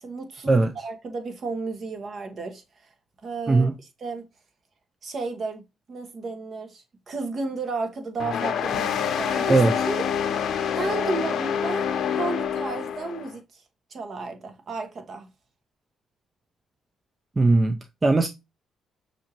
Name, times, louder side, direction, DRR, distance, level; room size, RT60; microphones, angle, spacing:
voice 1, 0.0-2.6 3.2-3.7 4.0-4.2 5.0-5.6 5.9-10.0 10.7-13.6 13.9-15.3, right 3 dB, 50° right, 1.2 m, -33 dB
sound 1, 8.2-13.3, left 8 dB, 65° left, 0.6 m, -26 dB
voice 2, 17.4-18.3, right 3 dB, 25° right, 0.4 m, -19 dB
6.2 x 2.6 x 2.9 m
cardioid pair, 90°, 0 cm